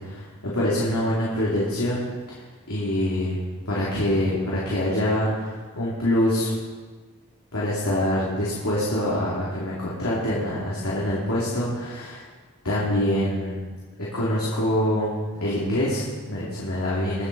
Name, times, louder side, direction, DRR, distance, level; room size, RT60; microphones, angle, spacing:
voice 1, 0.0-3.4 3.7-6.5 7.5-12.2 12.6-13.6 14.1-15.1 15.4-17.3, left 1 dB, 75° left, -7 dB, 3.0 m, -25 dB
23.0 x 7.8 x 4.2 m, 1.4 s
head